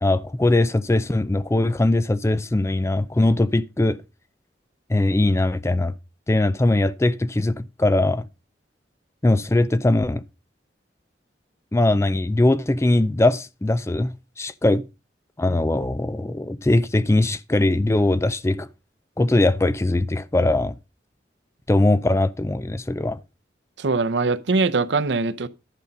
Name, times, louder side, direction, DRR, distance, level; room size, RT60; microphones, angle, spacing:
voice 1, 0.0-4.0 4.9-5.9 6.3-8.3 9.2-10.2 11.7-14.8 15.4-18.7 19.2-20.8 21.7-23.2, left 2 dB, 15° left, 0.4 m, -21 dB
voice 2, 23.8-25.5, right 3 dB, 75° right, 0.7 m, -22 dB
11.0 x 5.3 x 5.3 m
head